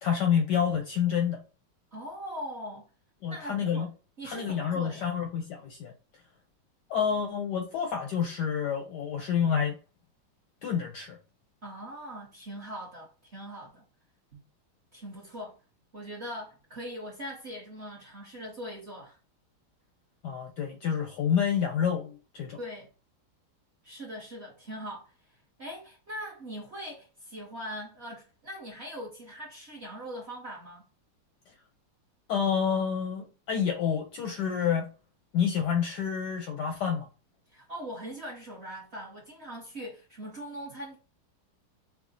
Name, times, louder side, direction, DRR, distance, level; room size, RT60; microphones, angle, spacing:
voice 1, 0.0-1.4 3.2-3.9 4.2-5.9 6.9-9.8 10.6-11.2 20.2-22.6 32.3-34.9 35.3-37.1, left 7 dB, 70° left, 1.0 m, -28 dB
voice 2, 1.9-2.9 3.3-3.9 4.2-5.1 11.6-13.8 14.3-14.4 14.9-15.6 15.9-19.2 22.6-22.9 23.8-25.1 25.6-30.8 37.5-41.0, equal, 45° right, 0.9 m, -41 dB
5.7 x 2.0 x 2.6 m
omnidirectional pair, 2.3 m